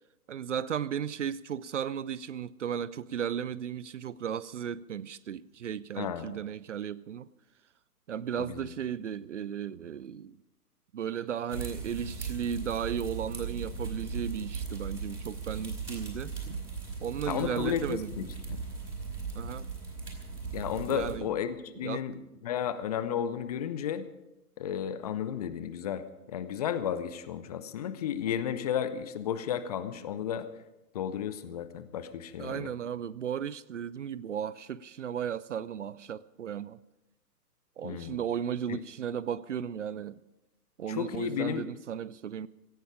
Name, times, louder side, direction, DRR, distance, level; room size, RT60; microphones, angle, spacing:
voice 1, 0.3-7.3 8.1-10.4 10.9-16.6 17.0-18.4 19.3-19.7 20.9-21.3 21.8-22.1 32.4-36.8 37.8-40.2 40.8-42.5, right 8 dB, 50° right, 0.5 m, -35 dB
voice 2, 6.0-6.3 8.4-8.6 17.2-18.6 20.5-22.1 22.4-24.1 24.6-26.0 26.3-30.5 30.9-32.7 37.8-38.2 38.7-38.8 40.9-41.6, left 9 dB, 25° left, 0.6 m, -33 dB
sound 1, 11.5-21.2, right 5 dB, 80° right, 4.7 m, -38 dB
17.0 x 15.0 x 5.0 m
figure-of-eight pair, 120°, 46 cm